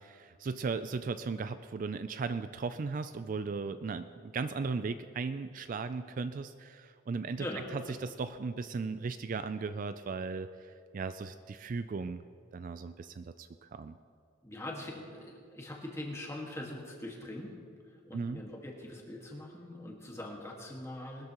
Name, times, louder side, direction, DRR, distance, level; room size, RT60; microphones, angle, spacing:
voice 1, 0.0-7.5 7.7-12.2 12.5-14.0 18.1-18.4, right 4 dB, 40° right, 11 dB, 0.3 m, -37 dB
voice 2, 7.4-8.0 14.4-17.6 17.9-21.3, left 1 dB, 15° left, -1 dB, 1.7 m, -42 dB
20.5 x 13.0 x 3.0 m, 2.4 s
head